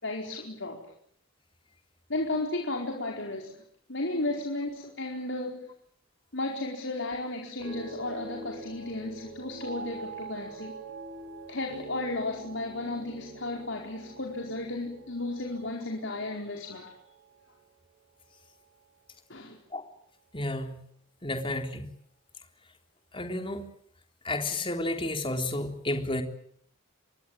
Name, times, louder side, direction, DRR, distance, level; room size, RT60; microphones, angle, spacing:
voice 1, 0.0-0.8 2.1-3.6 3.9-5.7 6.3-10.8 11.5-17.0 19.3-19.6, left 2 dB, 65° left, 0 dB, 4.6 m, -34 dB
sound 1, 7.6-18.0 18.3-18.8, right 3 dB, 85° right, 6.9 m, -45 dB
voice 2, 20.3-20.7 21.2-21.9 23.1-23.7 24.2-26.2, left 2 dB, 25° left, 5 dB, 3.7 m, -31 dB
28.0 x 22.5 x 9.1 m, 0.66 s
head